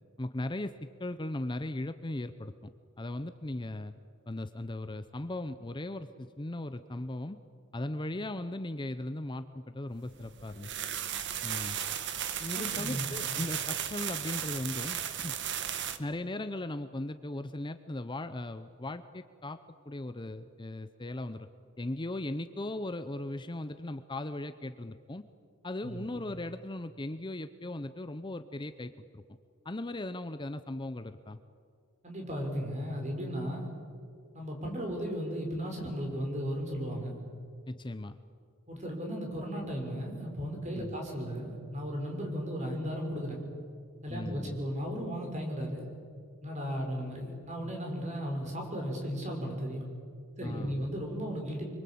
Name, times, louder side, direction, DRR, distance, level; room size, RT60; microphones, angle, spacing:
voice 1, 0.2-2.5 3.0-3.9 4.3-7.4 7.7-10.7 11.4-11.8 12.4-15.3 16.0-19.6 19.9-21.5 21.8-25.2 25.6-29.2 29.6-31.4 37.7-38.2 40.7-41.0 44.1-44.6 50.4-50.9, left 1 dB, 20° left, 10 dB, 0.7 m, -38 dB
sound 1, 10.2-16.0, right 9 dB, 55° right, 1.4 m, -35 dB
voice 2, 12.5-13.1 25.8-26.0 32.0-33.7 34.3-37.2 38.7-43.4 44.0-45.8 46.4-49.9 50.4-51.6, equal, 35° right, 1 dB, 6.0 m, -35 dB
26.5 x 24.0 x 8.6 m, 2.3 s
head